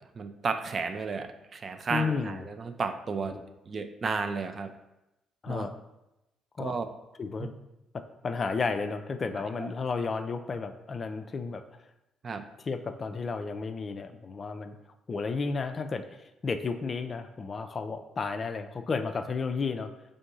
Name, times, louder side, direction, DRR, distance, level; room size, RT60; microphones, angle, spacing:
voice 1, 0.2-3.4 3.7-4.7 5.5-5.7 6.6-6.9 9.6-9.7 12.2-12.4, right 4 dB, 40° right, 8 dB, 0.3 m, -33 dB
voice 2, 1.9-2.4 3.3-3.4 5.4-5.8 6.6-6.8 7.2-7.5 7.9-11.6 12.6-14.8 15.1-19.9, left 4 dB, 40° left, 8 dB, 0.3 m, -32 dB
3.4 x 2.6 x 4.0 m, 0.94 s
figure-of-eight pair, 45°, 0 cm